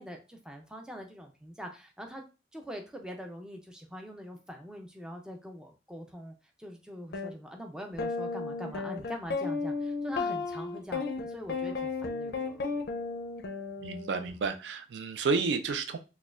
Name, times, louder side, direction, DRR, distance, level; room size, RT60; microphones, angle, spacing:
voice 1, 0.0-2.2 2.5-12.6, equal, 5° right, 2 dB, 0.4 m, -43 dB
sound 1, 7.1-7.3 8.0-14.3, left 4 dB, 60° left, 0.4 m, -34 dB
voice 2, 13.8-16.0, right 4 dB, 85° right, 8 dB, 0.4 m, -31 dB
4.1 x 2.2 x 2.4 m, 0.31 s
head